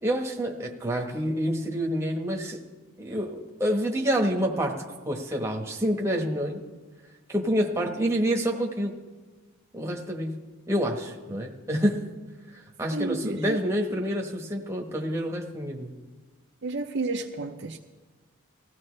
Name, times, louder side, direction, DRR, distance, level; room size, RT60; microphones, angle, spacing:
voice 1, 0.0-2.6 3.0-6.6 7.3-9.0 9.7-10.3 10.7-12.1 12.5-15.9, equal, 15° right, 1 dB, 1.2 m, -28 dB
voice 2, 12.9-13.6 16.6-17.8, right 3 dB, 50° right, 1 dB, 0.6 m, -31 dB
20.5 x 15.5 x 3.3 m, 1.3 s
head